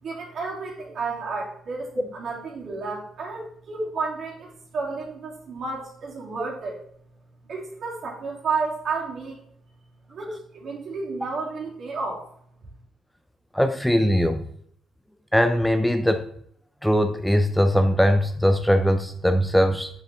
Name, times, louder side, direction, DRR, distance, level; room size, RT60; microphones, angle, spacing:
voice 1, 0.0-6.8 7.4-9.4 10.1-12.2, right 4 dB, 60° right, -2 dB, 3.1 m, -31 dB
voice 2, 13.5-14.4 15.3-16.3 16.8-19.9, equal, 5° left, 8 dB, 0.6 m, -20 dB
7.8 x 6.6 x 3.6 m, 0.66 s
cardioid pair, 90°, 0 cm